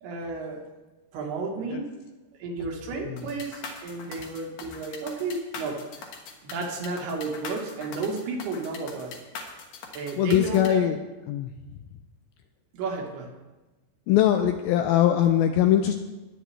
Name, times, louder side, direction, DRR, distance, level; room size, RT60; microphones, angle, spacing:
voice 1, 0.0-0.7 1.1-1.9 2.3-6.1 6.4-9.2 9.9-10.9 12.7-13.4, right 3 dB, 75° right, 1 dB, 3.4 m, -32 dB
sound 1, 3.2-10.7, left 5 dB, 60° left, 2.8 m, -41 dB
voice 2, 10.2-11.0 11.3-11.5 14.1-15.9, left 11 dB, 80° left, 7 dB, 2.2 m, -21 dB
20.0 x 9.0 x 3.3 m, 1.1 s
omnidirectional pair, 4.8 m